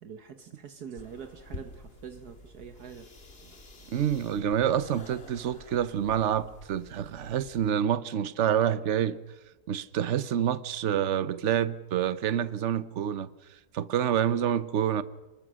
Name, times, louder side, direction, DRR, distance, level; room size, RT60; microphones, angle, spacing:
voice 1, 0.0-3.1, right 7 dB, 70° right, 1.7 m, -44 dB
sound 1, 1.0-7.7, left 2 dB, 35° left, 2.4 m, -49 dB
voice 2, 3.9-9.2 9.7-13.3 13.7-15.0, right 9 dB, 50° right, 1.1 m, -27 dB
29.5 x 20.5 x 6.3 m
omnidirectional pair, 1.8 m